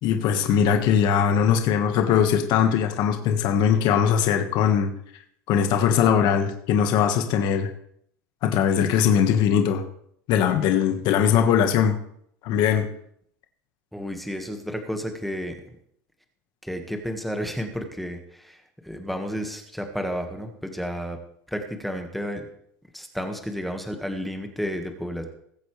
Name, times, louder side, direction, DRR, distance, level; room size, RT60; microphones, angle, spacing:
voice 1, 0.0-4.9 5.5-7.7 8.4-9.8 10.3-11.9 12.4-12.9, left 8 dB, 55° left, 5 dB, 1.6 m, -20 dB
voice 2, 13.9-15.6 16.6-21.2 21.5-22.5 22.9-25.2, equal, ahead, 4 dB, 1.7 m, -31 dB
21.0 x 8.1 x 3.4 m, 0.69 s
supercardioid pair, 120°, 9 cm